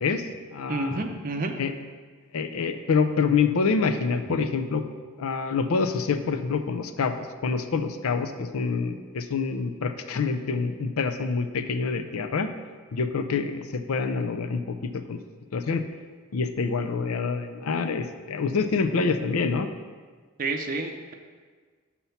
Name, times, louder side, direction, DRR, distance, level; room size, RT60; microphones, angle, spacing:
voice 1, 0.0-1.0 1.6-1.7 2.3-4.8 5.2-12.5 12.9-15.2 15.5-15.8 16.3-19.7, left 5 dB, 80° left, 9 dB, 0.5 m, -26 dB
voice 2, 0.7-1.5 4.3-4.4 20.4-21.1, right 3 dB, 40° right, 3 dB, 0.5 m, -29 dB
6.9 x 4.3 x 5.7 m, 1.5 s
head